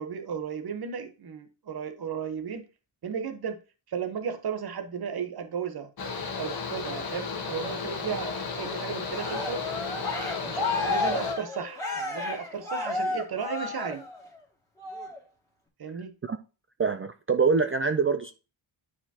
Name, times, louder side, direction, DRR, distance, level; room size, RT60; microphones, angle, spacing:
voice 1, 0.0-2.7 3.0-3.6 3.9-5.9 6.4-9.7 10.4-14.0 15.8-16.2, right 7 dB, 50° right, 1.1 m, -34 dB
Mechanical fan, 6.0-11.3, left 4 dB, 45° left, 1.2 m, -34 dB
Cheering, 9.1-14.4 14.8-15.2, left 3 dB, 5° left, 2.1 m, -32 dB
voice 2, 16.8-18.3, right 5 dB, 30° right, 0.4 m, -24 dB
9.5 x 4.9 x 2.8 m
wide cardioid pair, 130°, 49 cm